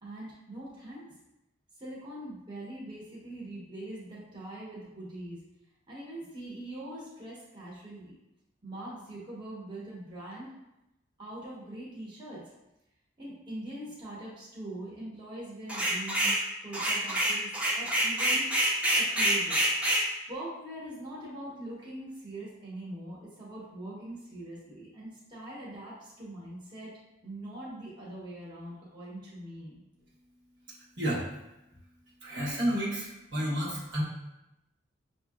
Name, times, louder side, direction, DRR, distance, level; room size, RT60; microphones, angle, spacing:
voice 1, 0.0-1.1 1.8-5.4 5.9-8.2 8.6-10.5 11.2-12.4 13.2-18.5 18.9-20.0 20.3-26.9 27.2-29.8, right 1 dB, 25° right, -7 dB, 1.1 m, -42 dB
sound 1, 15.7-16.4 16.7-20.1, right 1 dB, 5° right, 0.7 m, -26 dB
voice 2, 32.2-34.0, equal, 65° right, -6 dB, 1.2 m, -30 dB
6.5 x 2.7 x 2.4 m, 0.92 s
head